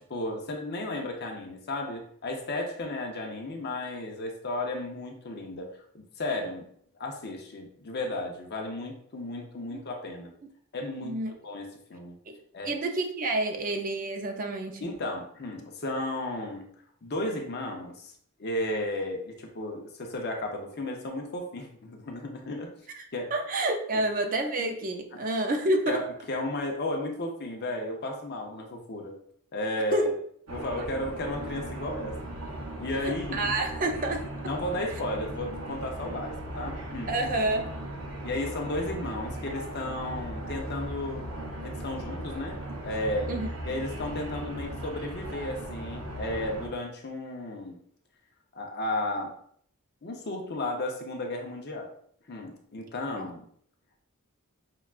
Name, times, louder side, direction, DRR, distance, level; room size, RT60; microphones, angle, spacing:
voice 1, 0.0-6.7 7.0-10.3 10.7-12.2 12.5-12.8 14.8-16.7 17.0-18.1 18.4-22.7 23.1-23.3 23.9-24.0 25.1-25.2 25.9-29.2 29.5-30.1 30.5-32.2 32.8-33.5 34.4-37.1 38.2-41.2 41.6-43.3 43.6-47.8 48.5-49.3 50.0-51.9 52.3-53.5, left 1 dB, 50° left, 2 dB, 0.6 m, -34 dB
voice 2, 11.0-11.3 12.3-12.4 12.6-14.9 23.3-26.0 29.9-30.1 33.0-34.3 37.1-37.7 43.3-43.5 53.2-53.3, right 2 dB, 40° right, 4 dB, 0.4 m, -28 dB
sound 1, 30.5-46.7, right 1 dB, 85° right, 0.8 m, -37 dB
5.6 x 2.3 x 2.4 m, 0.64 s
head